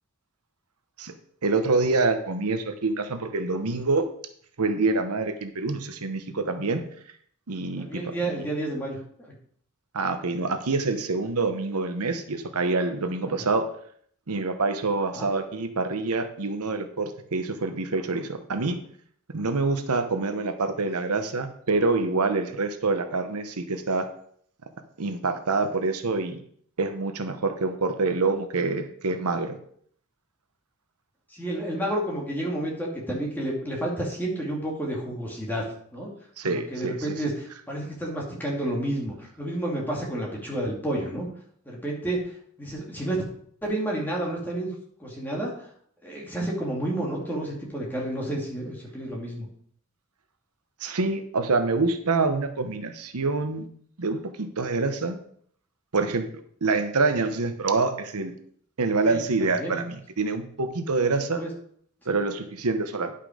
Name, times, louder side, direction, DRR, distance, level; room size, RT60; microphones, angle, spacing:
voice 1, 1.4-4.1 4.6-6.8 7.5-8.5 9.9-13.7 14.3-18.8 19.3-24.1 25.0-26.4 26.8-29.6 36.4-37.2 50.8-53.7 54.0-55.2 55.9-56.3 56.6-58.3 58.8-61.4 62.1-63.1, right 3 dB, 90° right, 8 dB, 1.0 m, -26 dB
voice 2, 7.8-9.3 13.3-13.5 15.1-15.3 31.3-35.6 35.9-36.1 36.4-41.3 41.7-42.2 42.6-43.2 43.6-44.7 45.0-45.5 46.0-49.5 59.0-59.2 59.6-59.8 61.0-61.1 61.4-61.5, right 1 dB, 10° left, -3 dB, 2.2 m, -30 dB
10.5 x 5.7 x 5.0 m, 0.62 s
head